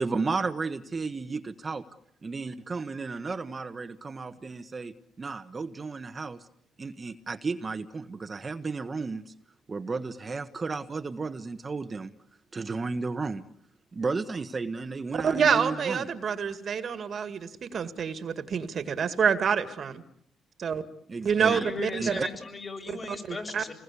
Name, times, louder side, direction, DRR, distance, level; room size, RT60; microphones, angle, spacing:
voice 1, 0.0-1.8 2.2-6.5 6.8-9.3 9.7-12.1 12.5-13.4 13.9-16.1 21.1-21.6 22.0-22.1, right 4 dB, 30° right, 9 dB, 1.3 m, -33 dB
voice 2, 15.1-20.0 20.6-20.8 21.2-22.2 23.3-23.6, right 7 dB, 55° right, 11 dB, 2.0 m, -27 dB
voice 3, 21.2-23.7, left 3 dB, 35° left, 5 dB, 7.3 m, -37 dB
28.0 x 21.0 x 8.4 m, 0.68 s
cardioid pair, 90°, 0 cm